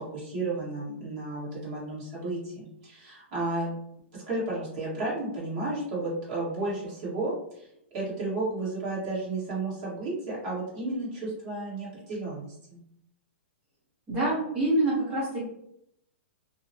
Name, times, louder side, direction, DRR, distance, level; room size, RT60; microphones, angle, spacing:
voice 1, 0.0-3.7 4.1-7.7 7.9-12.8, right 2 dB, 30° right, -7 dB, 1.2 m, -33 dB
voice 2, 14.1-15.4, right 1 dB, 10° right, -10 dB, 0.8 m, -26 dB
2.7 x 2.0 x 2.7 m, 0.75 s
hypercardioid pair, 180°, 7 cm